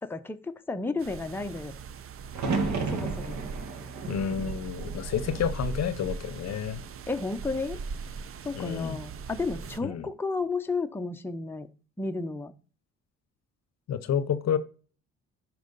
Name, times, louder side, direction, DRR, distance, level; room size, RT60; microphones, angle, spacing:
voice 1, 0.0-1.8 2.9-3.4 7.1-7.8 8.4-11.7 12.0-12.5, left 3 dB, 5° left, 0.7 m, -32 dB
sound 1, 1.0-9.8, right 5 dB, 45° right, 0.6 m, -39 dB
sound 2, 2.3-6.4 6.7-7.5 9.4-9.8, right 4 dB, 65° right, 1.5 m, -34 dB
voice 2, 4.1-6.8 8.5-9.0 9.8-10.1 13.9-14.6, left 8 dB, 60° left, 0.7 m, -29 dB
10.5 x 4.6 x 4.0 m
cardioid pair, 90°, 30 cm